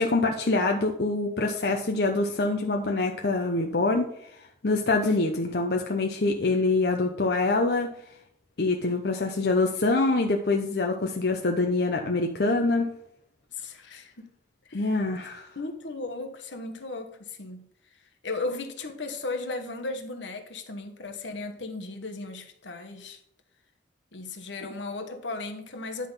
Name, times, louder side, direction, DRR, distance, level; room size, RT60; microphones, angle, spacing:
voice 1, 0.0-4.3 4.6-7.9 8.6-12.9 14.7-15.5, left 3 dB, 60° left, 0.7 m, -25 dB
voice 2, 13.5-14.3 14.7-15.0 15.5-17.7 18.2-23.2 24.1-26.1, left 3 dB, 75° left, 1.2 m, -36 dB
10.0 x 3.8 x 5.6 m
head